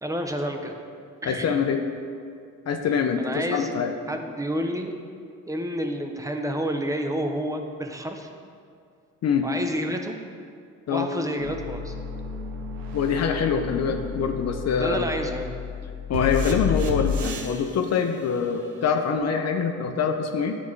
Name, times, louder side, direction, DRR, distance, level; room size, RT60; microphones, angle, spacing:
voice 1, 0.0-0.8 1.2-1.6 3.2-3.8 4.1-4.9 5.5-8.3 9.4-10.2 10.9-11.9 14.8-15.5, equal, 10° right, 5 dB, 0.6 m, -29 dB
voice 2, 1.2-1.8 2.7-3.9 9.2-9.5 10.9-11.1 12.9-15.0 16.1-20.6, left 6 dB, 50° left, 5 dB, 0.5 m, -24 dB
sound 1, 11.4-17.6 19.2-19.3, left 4 dB, 80° right, 0.7 m, -31 dB
9.3 x 3.6 x 3.2 m, 2.3 s
supercardioid pair, 70°, 34 cm